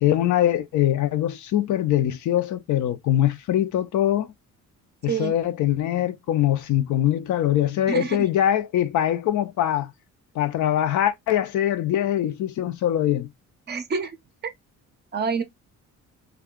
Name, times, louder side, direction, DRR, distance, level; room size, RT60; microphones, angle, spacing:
voice 1, 0.0-4.3 5.0-9.9 10.3-13.3, left 11 dB, 65° left, 0.5 m, -23 dB
voice 2, 7.9-8.2 13.7-14.2 15.1-15.4, right 6 dB, 35° right, 0.5 m, -27 dB
2.6 x 2.3 x 3.5 m
cardioid pair, 135°, 31 cm